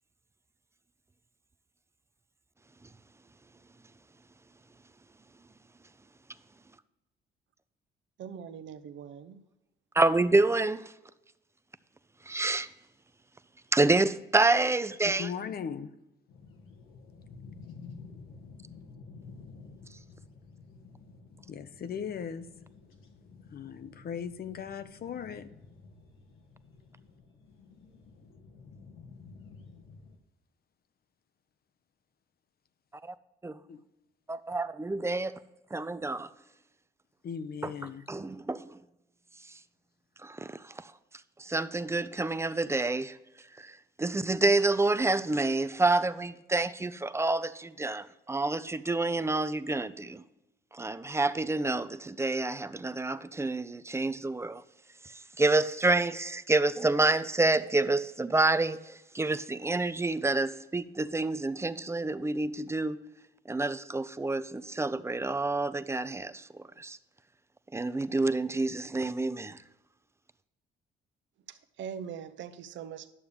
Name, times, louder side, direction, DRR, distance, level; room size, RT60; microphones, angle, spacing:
voice 1, 8.2-9.4 71.5-73.1, right 8 dB, 70° right, 0.7 m, -42 dB
voice 2, 9.9-10.9 12.3-12.7 13.7-15.3 33.0-33.1 33.4-33.6 34.3-35.4 35.7-36.3 37.6-38.8 40.2-40.9 41.4-43.2 43.6-50.2 50.7-54.6 55.0-63.0 63.5-67.0 67.7-69.6, right 2 dB, 15° right, 0.4 m, -28 dB
voice 3, 15.0-15.9 21.5-22.4 23.5-25.5 33.7-33.8 37.2-38.0, left 7 dB, 50° left, 0.7 m, -38 dB
sound 1, 16.3-30.2, left 4 dB, 85° left, 1.4 m, -51 dB
11.0 x 6.8 x 3.4 m
cardioid pair, 90°, 20 cm